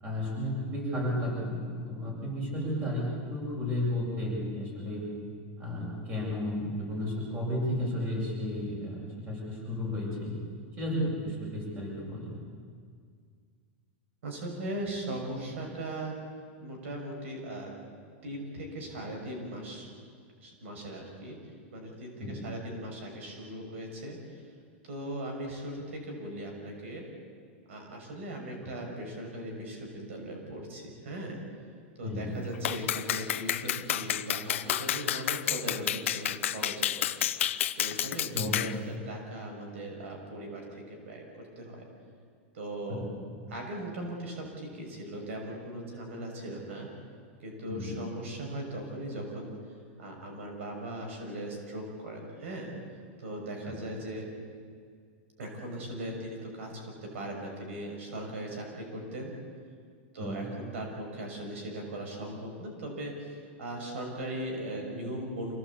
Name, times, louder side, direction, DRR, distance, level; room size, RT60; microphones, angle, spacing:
voice 1, 0.0-5.0 5.6-10.4 10.8-12.4 22.2-22.4 32.0-32.3 38.3-38.6 42.9-43.0 47.7-47.9 53.6-53.7 60.2-60.4, left 1 dB, 25° right, -2 dB, 7.9 m, -33 dB
voice 2, 14.2-16.2 16.6-17.7 18.2-19.9 20.4-21.4 21.7-24.4 24.8-27.0 27.7-31.4 32.0-37.1 37.4-41.8 42.5-43.1 43.5-46.9 47.4-49.7 50.0-52.7 53.2-54.3 55.4-59.3 60.1-65.5, right 1 dB, 90° right, 2 dB, 6.1 m, -39 dB
Clapping, 32.6-38.8, left 11 dB, 90° left, 0.9 m, -30 dB
27.0 x 17.5 x 8.5 m, 2.1 s
supercardioid pair, 160°, 7 cm